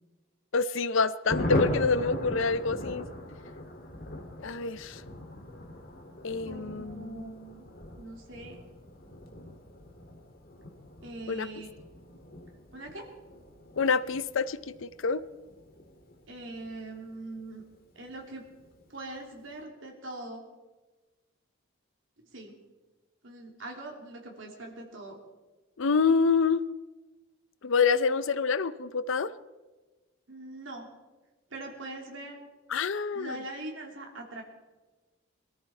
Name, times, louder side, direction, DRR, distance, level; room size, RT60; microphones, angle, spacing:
voice 1, 0.5-3.1 4.4-5.0 6.2-7.3 11.3-11.5 13.8-15.2 25.8-26.6 27.6-29.3 32.7-33.4, left 5 dB, 65° left, 16 dB, 0.5 m, -27 dB
Thunder, 1.3-17.4 17.7-17.8 18.1-18.2 18.5-18.9, left 1 dB, 45° left, 2.0 m, -38 dB
voice 2, 6.4-7.7 8.0-8.6 11.0-11.7 12.7-13.0 16.3-17.6 17.9-18.4 18.9-20.4 22.3-22.6 23.2-25.2 30.3-30.9 31.5-32.4 33.1-34.4, right 2 dB, 60° right, 1 dB, 3.1 m, -42 dB
22.5 x 13.5 x 4.4 m, 1.2 s
head